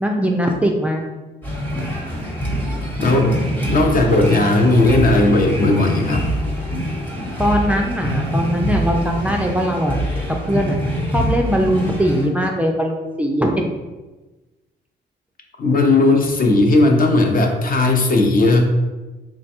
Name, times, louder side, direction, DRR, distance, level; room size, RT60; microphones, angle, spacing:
voice 1, 0.0-1.0 7.4-10.0 10.4-10.8 11.1-13.5, equal, 5° right, 1 dB, 0.4 m, -20 dB
sound 1, 1.4-12.3, equal, 10° left, 1.0 m, -24 dB
voice 2, 3.0-3.4 3.7-6.3 15.6-18.7, left 2 dB, 45° left, 2 dB, 0.6 m, -16 dB
3.4 x 2.2 x 4.2 m, 1.2 s
cardioid pair, 90°, 20 cm